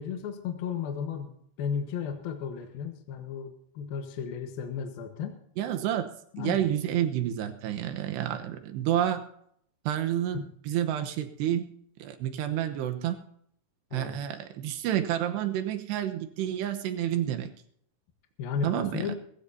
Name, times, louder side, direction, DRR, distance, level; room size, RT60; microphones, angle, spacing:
voice 1, 0.0-5.4 6.3-6.6 10.3-10.5 13.9-14.2 18.4-19.1, left 7 dB, 65° left, 4 dB, 2.8 m, -34 dB
voice 2, 5.6-6.1 6.4-9.3 9.9-11.7 12.0-13.2 13.9-17.5 18.6-19.1, right 11 dB, 75° right, 6 dB, 3.1 m, -29 dB
20.5 x 15.5 x 2.8 m, 0.68 s
omnidirectional pair, 5.2 m